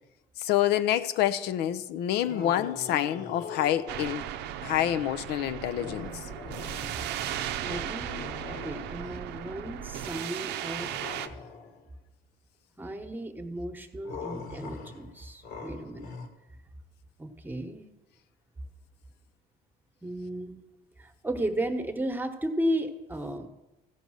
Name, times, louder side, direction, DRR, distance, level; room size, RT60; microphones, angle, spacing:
voice 1, 0.4-4.2 4.6-6.1, left 12 dB, 80° left, 11 dB, 0.5 m, -27 dB
sound 1, 2.2-4.3 5.8-7.2 7.6-9.3 10.8-11.9 14.0-16.3, left 5 dB, 65° left, 1.4 m, -42 dB
sound 2, 3.9-11.3, right 11 dB, 85° right, 0.6 m, -36 dB
voice 2, 7.6-8.2 8.6-10.9 12.8-16.1 17.2-17.8 20.0-20.6 21.0-23.5, right 1 dB, 10° right, 6 dB, 1.1 m, -34 dB
15.0 x 5.2 x 6.3 m, 1.0 s
cardioid pair, 110°, 17 cm